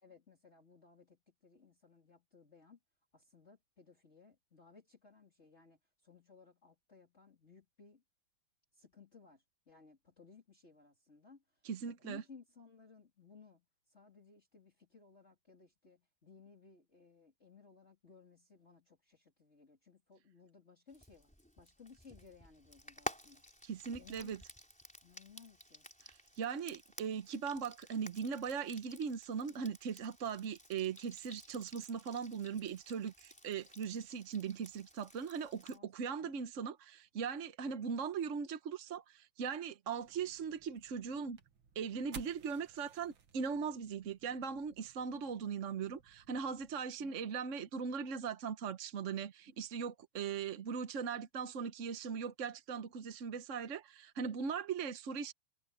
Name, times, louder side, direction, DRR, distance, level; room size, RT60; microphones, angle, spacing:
voice 1, 0.0-2.8 3.1-8.0 8.7-23.4 24.0-24.4 25.0-25.9 35.6-36.4 47.0-47.4, left 5 dB, 30° left, 3.5 m, -61 dB
voice 2, 11.6-12.2 23.6-24.4 26.1-41.4 41.7-55.3, right 6 dB, 50° right, 1.0 m, -39 dB
Frying (food), 20.9-35.8, equal, 5° left, 4.3 m, -52 dB
sound 1, 40.0-46.7, right 6 dB, 85° right, 2.5 m, -57 dB
omnidirectional pair, 2.2 m